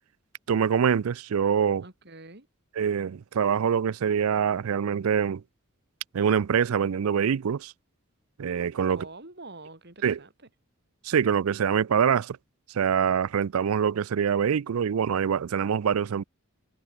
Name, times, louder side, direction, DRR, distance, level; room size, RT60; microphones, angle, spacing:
voice 1, 0.5-1.8 2.8-5.4 6.1-7.7 8.4-9.0 10.0-10.2 11.0-12.4 12.7-16.2, right 7 dB, 85° right, 0.4 m, -24 dB
voice 2, 1.8-2.5 8.9-10.5, right 2 dB, 50° right, 5.4 m, -46 dB
head